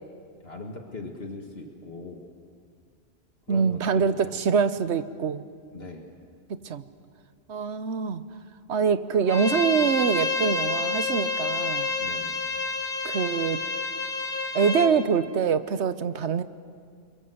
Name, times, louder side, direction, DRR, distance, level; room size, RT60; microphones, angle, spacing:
voice 1, 0.4-2.2 3.5-4.3 5.7-6.1 11.9-12.4, left 2 dB, 55° left, 2 dB, 2.2 m, -40 dB
voice 2, 3.5-5.4 6.6-6.9 7.5-8.3 8.7-11.9 13.0-13.6 14.5-16.4, right 6 dB, 70° right, 12 dB, 1.2 m, -24 dB
Bowed string instrument, 9.3-14.9, left 4 dB, 35° left, 2.1 m, -29 dB
29.5 x 22.5 x 7.9 m, 2.1 s
omnidirectional pair, 1.2 m